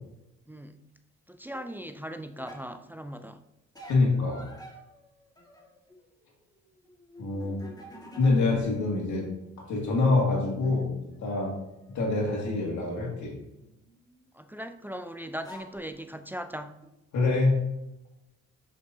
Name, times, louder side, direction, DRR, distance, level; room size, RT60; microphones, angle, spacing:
voice 1, 0.5-0.9 1.3-3.4 14.3-16.8, equal, 5° right, 9 dB, 0.3 m, -39 dB
sound 1, 1.5-1.7 2.4-2.7 3.8-6.1 6.3-8.7 9.0-9.9 11.1-11.2 12.7-14.4 15.1-15.2 15.4-15.8 16.8-16.9, equal, 15° left, 1.5 m, -50 dB
voice 2, 3.9-4.5 7.2-7.6 8.2-9.3 9.7-10.9 11.2-11.6 11.9-13.4 17.1-17.6, left 3 dB, 70° left, -2 dB, 2.1 m, -25 dB
6.5 x 5.6 x 2.8 m, 0.91 s
cardioid pair, 90°, 30 cm